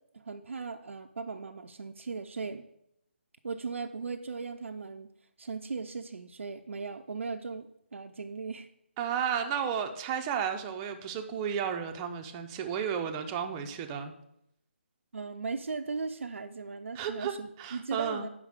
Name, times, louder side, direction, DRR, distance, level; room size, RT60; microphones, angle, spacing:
voice 1, 0.1-2.7 3.4-5.1 5.4-8.7 15.1-18.3, right 4 dB, 80° right, 5 dB, 0.4 m, -38 dB
voice 2, 9.0-14.1 16.9-17.3 17.6-18.3, right 8 dB, 20° right, 5 dB, 0.5 m, -33 dB
5.2 x 5.0 x 6.4 m, 0.79 s
figure-of-eight pair, 155°, 7 cm